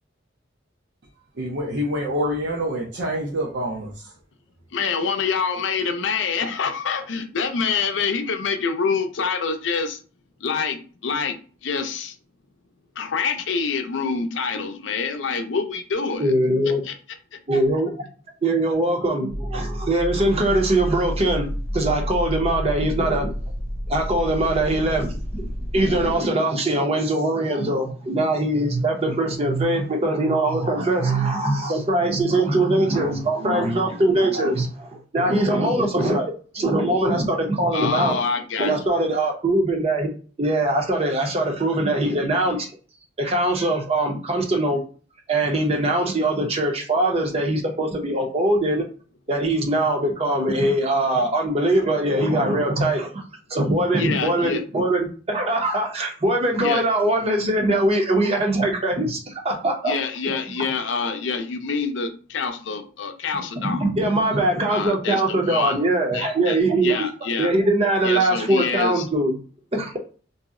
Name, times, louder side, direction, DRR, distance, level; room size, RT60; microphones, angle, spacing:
voice 1, 1.4-4.1, equal, 70° right, -4 dB, 0.7 m, -26 dB
voice 2, 4.7-10.0 10.4-12.2 13.0-16.3 16.7-16.9 17.3-17.4 37.7-38.8 54.0-54.6 56.6-56.8 59.8-63.9 64.7-65.8 66.1-67.5 68.0-69.1, left 5 dB, 70° left, 7 dB, 0.5 m, -26 dB
voice 3, 16.2-16.8 17.5-18.1 18.4-23.3 23.9-25.5 25.7-38.1 38.6-40.1 40.4-42.7 43.2-44.8 45.3-48.8 49.3-53.2 53.5-59.9 63.6-67.1 67.4-69.4 69.7-69.9, right 1 dB, 35° right, 3 dB, 0.6 m, -22 dB
sound 1, 19.3-26.2, equal, 20° left, 0.6 m, -30 dB
2.7 x 2.0 x 3.6 m, 0.38 s
head